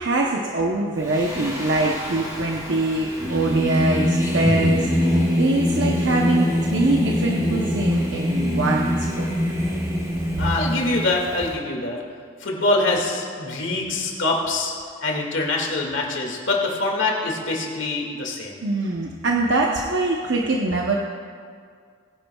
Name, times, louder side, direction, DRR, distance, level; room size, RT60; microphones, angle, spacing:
voice 1, 0.0-9.3 18.6-21.0, right 2 dB, 60° right, -1 dB, 0.8 m, -23 dB
Singing, 1.1-11.5, left 1 dB, 15° right, 2.5 m, -24 dB
voice 2, 10.4-12.0 12.4-14.7 15.0-18.6, left 2 dB, 65° left, -1 dB, 2.0 m, -24 dB
20.0 x 11.0 x 2.3 m, 2.1 s
head